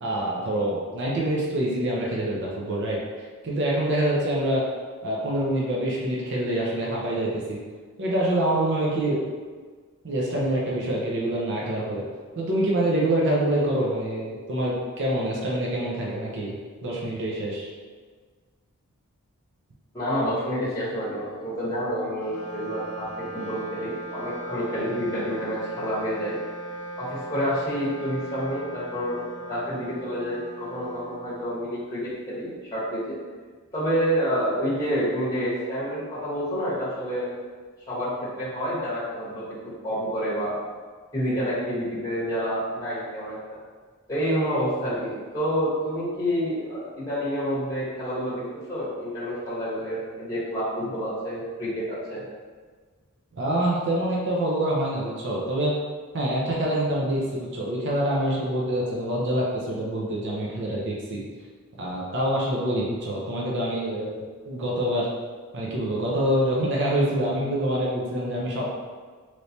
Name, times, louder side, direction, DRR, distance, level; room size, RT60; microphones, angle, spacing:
voice 1, 0.0-3.0 3.4-4.6 5.0-7.6 8.0-9.2 10.0-12.0 12.4-17.7 53.4-55.7 56.1-61.2 61.8-65.1 65.5-68.7, right 1 dB, 55° right, -4 dB, 0.6 m, -26 dB
voice 2, 19.9-26.4 27.0-33.1 33.7-37.3 37.9-38.1 38.4-39.4 39.8-40.6 41.1-43.4 44.1-48.4 48.7-52.2, equal, 15° left, -9 dB, 1.0 m, -28 dB
Wind instrument woodwind instrument, 22.3-31.8, right 1 dB, 75° left, 0.5 m, -38 dB
3.2 x 3.0 x 2.7 m, 1.5 s
head